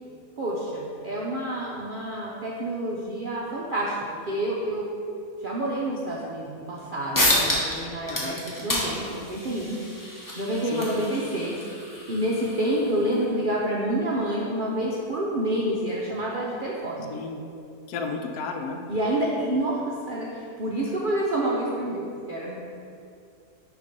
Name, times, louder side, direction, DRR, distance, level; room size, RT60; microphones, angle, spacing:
voice 1, 0.4-4.0 4.3-4.9 5.4-9.8 10.1-11.6 12.1-17.1 18.9-22.6, right 1 dB, 60° right, -5 dB, 0.5 m, -28 dB
sound 1, 6.8-6.9 7.1-7.8 8.0-13.2, left 1 dB, 15° left, 0.7 m, -29 dB
voice 2, 8.1-8.4 10.7-10.8 17.1-17.4 17.9-18.8, left 4 dB, 80° left, 4 dB, 1.1 m, -32 dB
6.7 x 2.9 x 5.2 m, 2.5 s
omnidirectional pair, 1.6 m